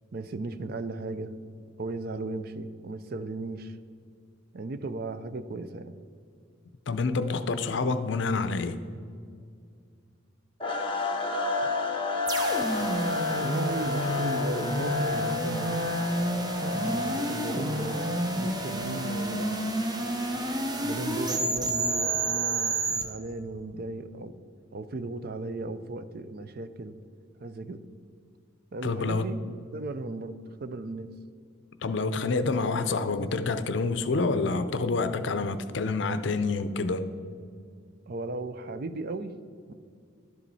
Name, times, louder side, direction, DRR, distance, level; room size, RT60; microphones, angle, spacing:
voice 1, 0.1-1.3 1.8-3.8 4.5-6.0 12.8-12.9 13.3-15.8 16.6-18.0 18.4-19.5 20.8-24.4 24.7-27.0 27.4-27.8 28.7-29.4 29.7-31.1 31.9-32.1 38.1-39.4 39.7-39.8, right 2 dB, 50° right, 0.5 m, -36 dB
voice 2, 6.9-8.8 28.8-29.3 31.8-37.1, left 3 dB, 65° left, 0.5 m, -27 dB
sound 1, 10.6-23.0, left 3 dB, 25° left, 0.9 m, -33 dB
sound 2, 12.3-23.0, right 1 dB, 20° right, 0.8 m, -30 dB
11.5 x 7.3 x 4.1 m
head